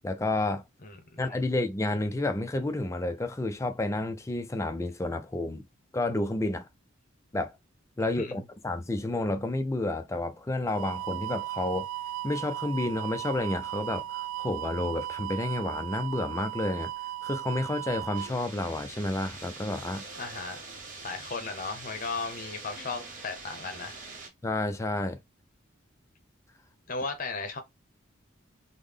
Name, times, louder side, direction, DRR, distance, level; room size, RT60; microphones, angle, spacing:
voice 1, 0.0-0.6 1.2-5.7 5.9-6.7 7.3-7.6 8.0-11.9 12.2-16.9 17.2-20.0 24.4-25.2, left 2 dB, 15° left, 0.3 m, -30 dB
voice 2, 0.8-1.4 8.2-8.3 20.2-20.6 21.0-24.0 26.9-27.6, left 4 dB, 40° left, 0.8 m, -36 dB
sound 1, 10.7-18.3, right 15 dB, 85° right, 0.3 m, -36 dB
sound 2, 18.1-24.3, right 3 dB, 40° right, 0.9 m, -44 dB
3.8 x 2.1 x 3.3 m
head